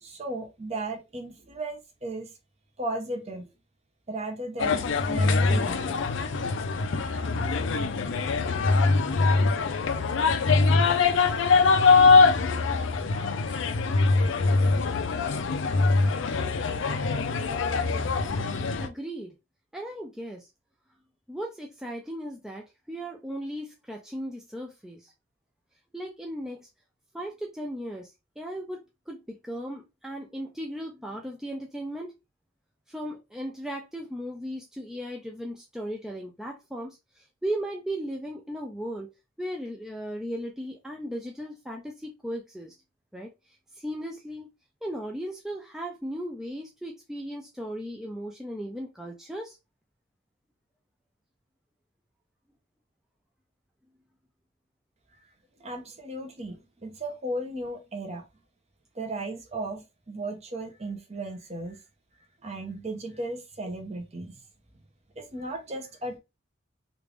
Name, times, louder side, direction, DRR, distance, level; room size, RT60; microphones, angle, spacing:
voice 1, 0.0-2.3 2.8-3.5 4.1-6.0 55.6-58.3 58.9-61.8 62.4-64.4 65.2-66.2, right 2 dB, 30° right, 0.8 m, -35 dB
sound 1, 4.6-18.9, left 4 dB, 65° left, 0.5 m, -23 dB
voice 2, 18.8-19.4 19.7-20.5 21.3-25.1 25.9-26.7 27.1-32.2 32.9-39.1 39.4-42.7 43.1-44.5 44.8-49.6, equal, 5° right, 0.4 m, -36 dB
3.3 x 2.5 x 3.2 m
head